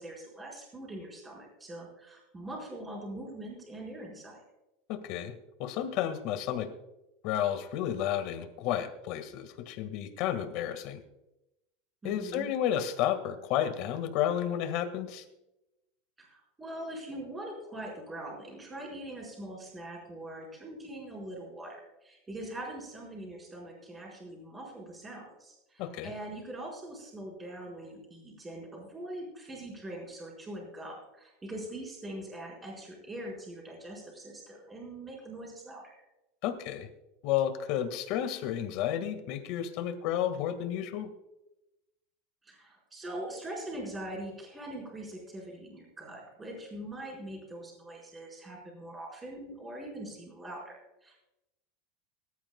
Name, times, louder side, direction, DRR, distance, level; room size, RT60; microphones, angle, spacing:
voice 1, 0.0-4.4 12.0-12.5 16.2-35.9 42.4-50.8 51.0-51.2, right 1 dB, 10° right, -2 dB, 4.7 m, -42 dB
voice 2, 4.9-5.3 5.6-6.7 7.2-11.0 12.0-15.2 25.8-26.1 36.4-36.9 37.2-41.1, left 10 dB, 50° left, 9 dB, 1.7 m, -31 dB
24.0 x 13.5 x 2.3 m, 0.93 s
supercardioid pair, 165°, 0 cm